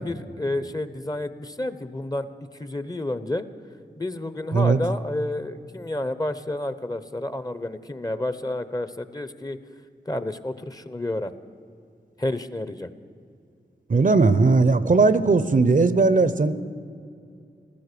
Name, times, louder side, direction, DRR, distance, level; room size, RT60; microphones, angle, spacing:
voice 1, 0.0-2.3 2.6-3.4 3.9-9.6 10.1-11.3 12.2-12.9, left 1 dB, 20° left, 13 dB, 0.9 m, -30 dB
voice 2, 13.9-16.5, right 3 dB, 50° right, 14 dB, 0.7 m, -18 dB
15.5 x 13.5 x 6.8 m, 2.4 s
cardioid pair, 40°, 18 cm